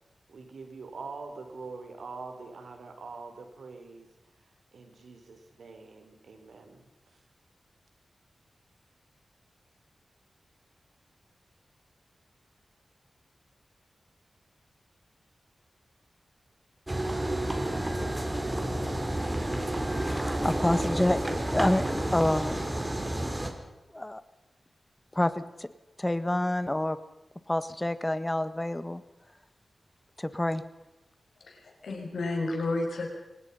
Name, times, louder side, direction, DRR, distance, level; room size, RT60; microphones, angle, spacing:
voice 1, 0.3-4.1 4.7-6.8, right 4 dB, 80° right, 5 dB, 4.2 m, -44 dB
sound 1, 16.9-23.5, right 1 dB, 20° right, 3.9 m, -30 dB
voice 2, 20.1-22.6 23.1-23.4 23.9-24.2 25.1-25.7 26.0-27.0 27.5-29.0 30.2-30.6, left 1 dB, 15° left, 13 dB, 1.6 m, -28 dB
voice 3, 31.4-33.1, left 2 dB, 80° left, 1 dB, 6.2 m, -31 dB
24.5 x 19.5 x 5.6 m, 1.0 s
cardioid pair, 65°, 0 cm